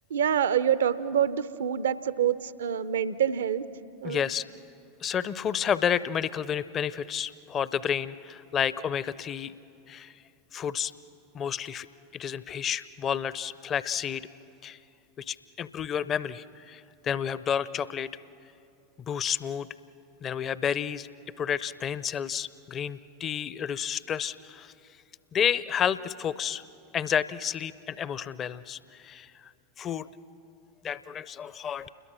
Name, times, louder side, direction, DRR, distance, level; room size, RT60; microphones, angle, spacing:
voice 1, 0.1-3.6 4.0-4.2, right 9 dB, 70° right, 16 dB, 0.6 m, -26 dB
voice 2, 4.0-4.4 5.0-9.5 9.9-10.1 10.5-10.9 11.3-11.9 12.1-14.3 14.6-14.8 15.2-18.1 19.1-19.7 20.2-21.1 21.4-24.7 25.3-26.6 26.9-29.3 29.8-30.1 30.8-31.9, left 8 dB, 30° left, 17 dB, 0.5 m, -30 dB
29.0 x 21.5 x 6.2 m, 2.7 s
figure-of-eight pair, 85°, 0 cm